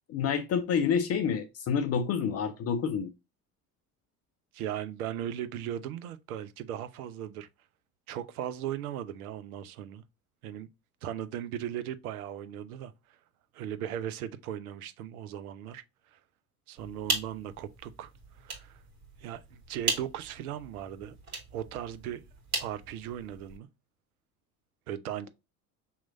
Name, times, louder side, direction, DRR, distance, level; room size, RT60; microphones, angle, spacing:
voice 1, 0.1-3.1, left 7 dB, 35° left, 0.5 m, -28 dB
voice 2, 4.5-7.5 8.1-10.0 10.4-10.7 11.0-12.9 13.5-15.8 16.1-16.2 16.7-18.8 19.2-21.2 21.5-22.2 22.6-23.7 24.9-25.3, right 10 dB, 75° right, 0.6 m, -37 dB
sound 1, 16.8-23.6, right 3 dB, 40° right, 1.8 m, -38 dB
5.6 x 3.0 x 2.5 m
figure-of-eight pair, 65°, 44 cm